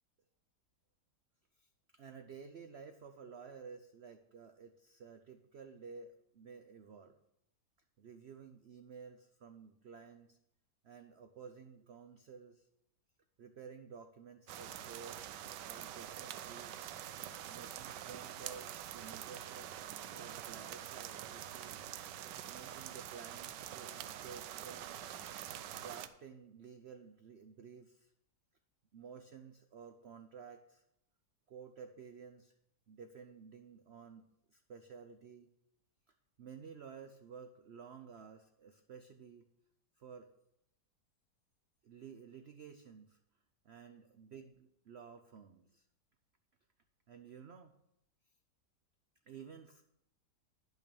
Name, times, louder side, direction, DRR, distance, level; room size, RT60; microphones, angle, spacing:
voice 1, 1.5-7.2 8.0-10.4 10.8-12.7 13.4-15.2 15.7-16.9 17.5-19.7 20.1-21.9 22.5-25.0 25.7-28.1 28.9-30.8 31.5-32.5 32.9-35.5 36.1-39.5 40.0-40.3 41.8-43.2 43.6-45.9 47.1-47.8 49.2-49.8, right 6 dB, 60° right, 7 dB, 0.6 m, -53 dB
sound 1, 14.5-26.1, right 11 dB, 90° right, 1.3 m, -46 dB
10.5 x 6.1 x 6.9 m, 0.80 s
omnidirectional pair, 1.8 m